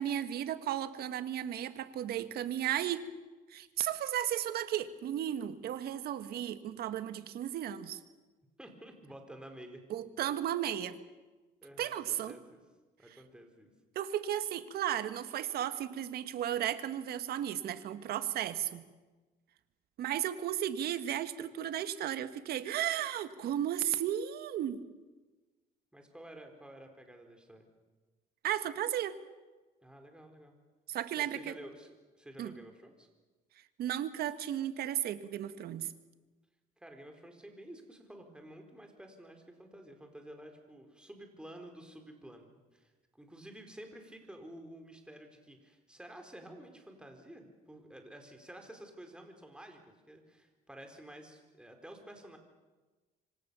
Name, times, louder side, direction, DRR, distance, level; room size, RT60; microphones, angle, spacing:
voice 1, 0.0-3.1 3.5-8.0 9.9-11.0 11.8-12.3 13.9-18.8 20.0-24.8 28.4-29.1 30.9-31.5 32.4-32.5 33.8-35.9, right 11 dB, 70° right, 11 dB, 1.7 m, -34 dB
voice 2, 8.6-9.8 11.6-12.6 13.0-13.7 25.9-27.7 29.8-30.6 31.2-33.1 36.8-42.9 43.2-52.4, right 1 dB, 5° right, 4 dB, 4.5 m, -51 dB
26.5 x 25.0 x 7.1 m, 1.3 s
cardioid pair, 110°, 17 cm